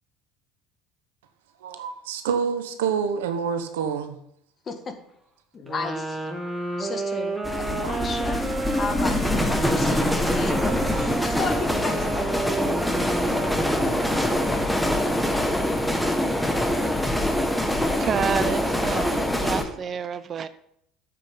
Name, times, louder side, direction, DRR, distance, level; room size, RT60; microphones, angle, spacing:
voice 1, 1.6-4.2 6.4-6.5 7.7-8.1, right 7 dB, 75° right, 1.1 m, -28 dB
voice 2, 5.5-6.2 6.8-8.4 8.7-12.3, left 4 dB, 35° left, 2.0 m, -33 dB
sound 1, 5.7-14.9, right 2 dB, 15° right, 2.6 m, -32 dB
sound 2, 7.4-19.6, left 1 dB, 5° left, 1.7 m, -24 dB
voice 3, 17.7-20.5, right 7 dB, 40° right, 0.6 m, -29 dB
13.5 x 7.7 x 3.9 m
hypercardioid pair, 65°, 0 cm